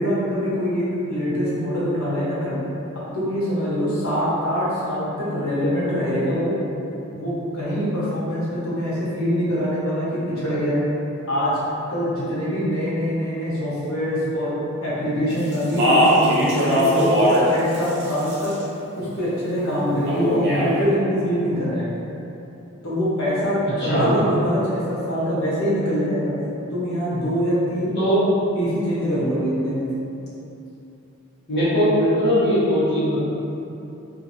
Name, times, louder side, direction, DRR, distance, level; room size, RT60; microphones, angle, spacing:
voice 1, 0.0-2.5 2.9-6.5 7.1-10.8 11.3-11.6 11.9-14.5 14.8-17.2 17.5-18.5 19.0-22.0 22.8-26.3 26.7-28.0 28.5-29.9, equal, 85° left, -9 dB, 1.1 m, -24 dB
Speech, 15.5-17.5 17.7-18.6 20.1-20.7, equal, 55° right, 0.6 m, -19 dB
voice 2, 23.8-24.2 28.0-28.2 31.5-33.2, equal, 55° left, -12 dB, 1.1 m, -19 dB
2.8 x 2.5 x 2.7 m, 2.9 s
head